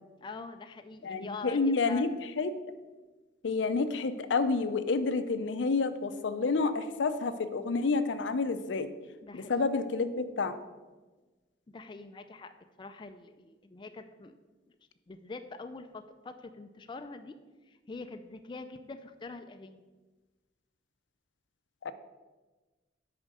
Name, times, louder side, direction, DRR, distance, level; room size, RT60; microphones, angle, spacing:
voice 1, 0.2-2.2 9.2-9.6 11.7-12.5 12.8-14.4 14.7-14.8 15.1-17.4 17.7-19.8, left 3 dB, 25° left, 8 dB, 0.3 m, -44 dB
voice 2, 1.0-2.1 2.4-2.5 3.4-8.9 9.3-10.5 21.8-21.9, left 4 dB, 85° left, 11 dB, 0.5 m, -29 dB
6.2 x 5.0 x 6.5 m, 1.2 s
head